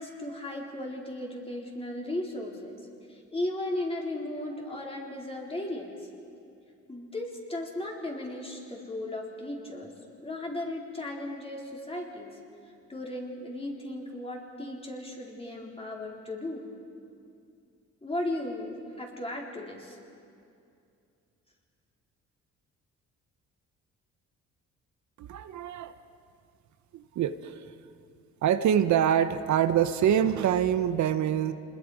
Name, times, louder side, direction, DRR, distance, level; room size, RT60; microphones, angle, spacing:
voice 1, 0.0-2.7 3.1-5.9 6.9-9.9 10.2-12.4 12.9-16.7 18.0-20.0, left 1 dB, 20° left, -1 dB, 3.9 m, -36 dB
voice 2, 25.2-25.9 26.9-27.6 28.4-31.5, right 9 dB, 70° right, 10 dB, 0.9 m, -25 dB
26.5 x 21.0 x 4.9 m, 2.5 s
cardioid pair, 90°, 30 cm